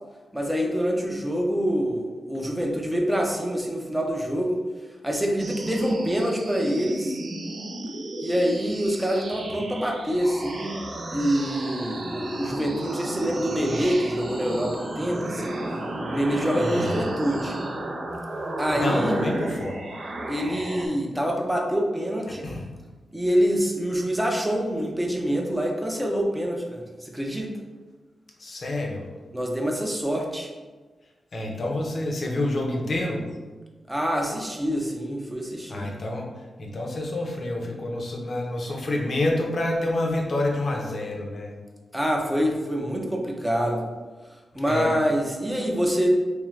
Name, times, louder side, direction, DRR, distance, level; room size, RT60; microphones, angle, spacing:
voice 1, 0.3-4.6 5.0-7.2 8.2-10.8 11.1-15.6 16.1-17.6 18.6-19.3 20.3-22.5 23.1-27.5 29.3-30.5 33.9-35.9 41.9-43.9 44.6-46.2, equal, 5° right, 0 dB, 0.5 m, -26 dB
sound 1, 5.4-20.9, right 1 dB, 65° right, 0.6 m, -33 dB
voice 2, 16.6-17.0 18.7-19.8 22.3-22.7 28.4-29.1 31.3-33.3 35.7-41.6 44.7-44.9, left 1 dB, 50° left, 0 dB, 0.7 m, -28 dB
3.6 x 3.3 x 3.1 m, 1.3 s
wide cardioid pair, 145°, 0 cm